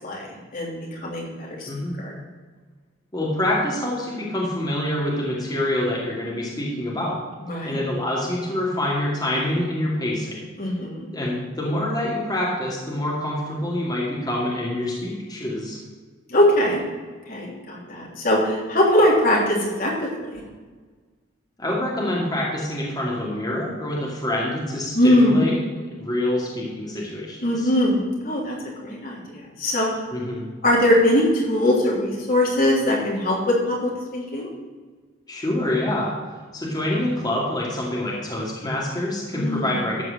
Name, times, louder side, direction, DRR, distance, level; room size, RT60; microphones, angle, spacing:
voice 1, 0.0-1.7 2.0-2.2 7.4-7.8 10.6-11.1 16.3-16.8 17.3-20.4 24.9-25.4 27.4-28.6 28.8-30.1 30.6-34.5 39.3-39.7, left 1 dB, 45° left, -3 dB, 3.3 m, -21 dB
voice 2, 3.1-7.2 7.6-10.4 11.1-15.8 21.6-25.6 25.9-27.7 30.1-30.5 35.3-36.1 36.5-40.0, left 1 dB, 20° left, -5 dB, 2.3 m, -26 dB
13.5 x 4.8 x 7.8 m, 1.4 s
head